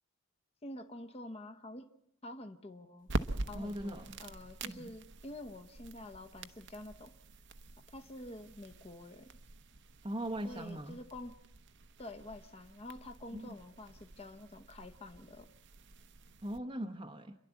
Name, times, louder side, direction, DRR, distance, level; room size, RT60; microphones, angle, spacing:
voice 1, 0.6-1.9 2.2-3.1 3.5-7.2 7.9-9.4 10.4-11.4 12.0-15.5, left 1 dB, 25° left, 0.9 m, -48 dB
sound 1, 3.0-16.6, right 2 dB, 55° right, 0.9 m, -45 dB
voice 2, 3.5-4.2 4.6-4.9 10.0-11.0 13.3-13.5 16.4-17.4, right 1 dB, 25° right, 0.8 m, -40 dB
29.0 x 11.5 x 8.2 m
head